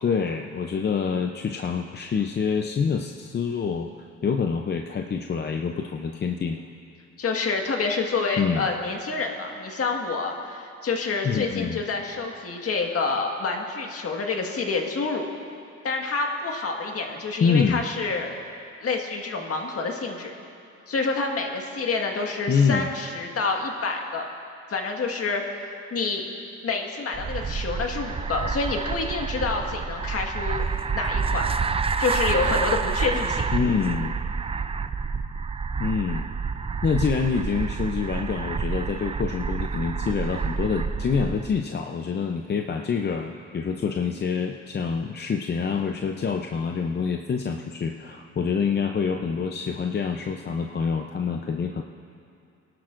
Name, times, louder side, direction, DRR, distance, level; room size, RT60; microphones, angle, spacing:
voice 1, 0.0-6.6 8.4-8.7 11.2-11.8 17.4-17.8 22.5-22.9 33.5-34.1 35.8-36.2 36.8-51.8, left 6 dB, 35° left, 4 dB, 0.6 m, -26 dB
voice 2, 7.2-15.3 15.8-18.3 18.8-20.3 20.9-24.3 24.7-26.3 26.6-30.7 30.9-31.4 32.0-33.4, left 4 dB, 50° left, 2 dB, 1.7 m, -28 dB
sound 1, 27.1-41.6, right 5 dB, 20° right, 0.4 m, -28 dB
23.5 x 12.0 x 2.5 m, 2.5 s
cardioid pair, 90°, 30 cm